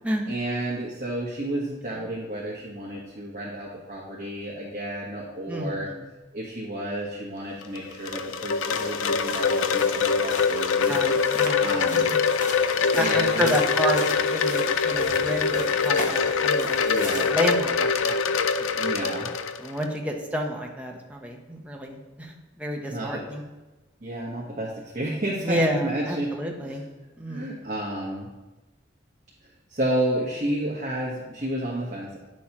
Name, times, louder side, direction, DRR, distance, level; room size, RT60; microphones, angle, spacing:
voice 1, 0.3-5.9 6.3-10.9 11.6-12.0 13.0-13.5 16.9-17.3 18.7-19.3 22.9-23.2 24.0-26.3 26.6-26.7 27.3-28.3 29.4-32.2, right 1 dB, 40° right, -5 dB, 1.2 m, -31 dB
voice 2, 5.5-6.0 10.9-12.2 12.9-16.9 17.2-18.2 19.6-23.4 25.4-26.8 27.2-27.5, equal, 5° right, 0 dB, 0.8 m, -30 dB
Wind chime, 7.6-19.9, left 5 dB, 80° left, 0.4 m, -24 dB
sound 1, 8.6-17.3, left 2 dB, 40° left, 0.9 m, -38 dB
9.9 x 6.3 x 2.9 m, 1.1 s
head